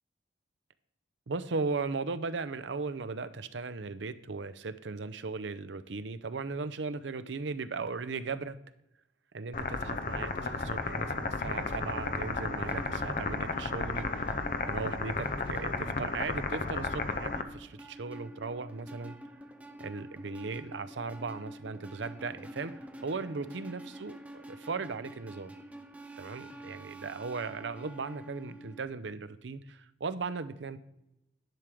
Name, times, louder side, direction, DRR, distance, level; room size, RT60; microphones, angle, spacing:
voice 1, 1.3-8.6 9.3-14.3 14.7-19.2 19.8-24.2 24.5-25.5 26.2-30.8, right 4 dB, 80° right, 12 dB, 0.6 m, -37 dB
sound 1, 9.5-17.4, left 3 dB, 45° left, 0.7 m, -33 dB
sound 2, 10.8-28.8, right 1 dB, 10° right, 0.7 m, -48 dB
10.5 x 5.0 x 6.1 m, 0.85 s
head